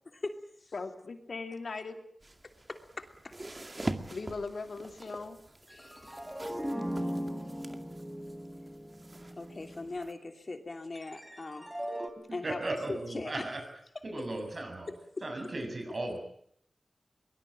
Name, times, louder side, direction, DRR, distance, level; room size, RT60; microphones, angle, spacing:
voice 1, 0.0-0.7 2.7-3.3 5.7-6.2 9.4-11.7 12.3-12.6 12.9-13.4 14.1-14.3 14.9-15.3, left 3 dB, 50° left, 6 dB, 2.9 m, -40 dB
voice 2, 0.7-2.0 4.1-5.4, left 4 dB, 75° left, 6 dB, 3.0 m, -39 dB
sound 1, 2.2-10.1, right 2 dB, 30° right, 2.2 m, -44 dB
sound 2, 5.7-10.0 11.0-12.1, equal, 10° right, 3.4 m, -38 dB
voice 3, 12.4-13.6 14.0-14.9 15.2-16.2, right 2 dB, 50° right, 4 dB, 7.1 m, -36 dB
23.0 x 20.5 x 9.0 m, 0.68 s
wide cardioid pair, 75°, 0 cm